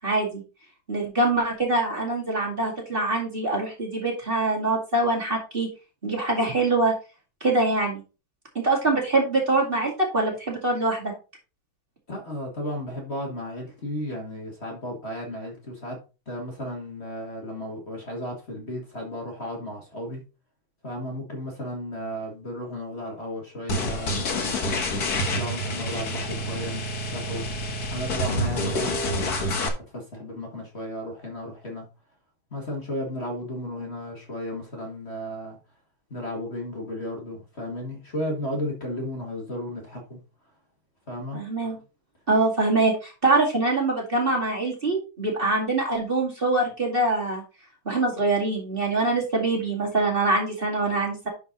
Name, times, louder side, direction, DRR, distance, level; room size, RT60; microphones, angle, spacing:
voice 1, 0.0-0.4 0.9-5.7 6.0-6.9 7.4-8.0 8.5-11.1 41.3-41.8 42.3-47.4 47.9-51.3, right 2 dB, 25° right, 2.4 m, -24 dB
voice 2, 12.1-16.0 16.3-20.2 20.8-27.5 27.9-29.6 29.9-31.8 32.5-35.6 36.1-40.2 41.1-41.4, left 1 dB, 30° left, 2.1 m, -34 dB
sound 1, 23.7-29.7, left 1 dB, 50° left, 1.8 m, -28 dB
11.0 x 4.6 x 4.0 m
omnidirectional pair, 2.3 m